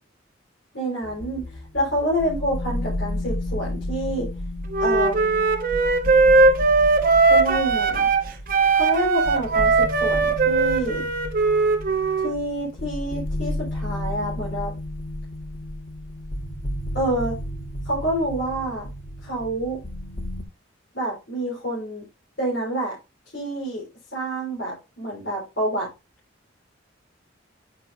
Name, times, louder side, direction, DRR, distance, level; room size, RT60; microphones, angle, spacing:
voice 1, 0.7-1.4 1.7-4.3 4.8-5.4 7.3-8.1 8.7-11.0 12.2-14.7 16.9-17.3 17.9-18.9 19.2-19.8 20.9-22.0 22.4-22.9 23.3-23.8 24.1-25.9, right 1 dB, 60° left, -6 dB, 4.3 m, -27 dB
sound 1, 1.0-20.4, left 1 dB, 45° left, 1.0 m, -32 dB
Wind instrument woodwind instrument, 4.7-8.2 8.5-12.4, right 4 dB, 45° right, 0.9 m, -19 dB
9.2 x 6.3 x 2.6 m, 0.26 s
head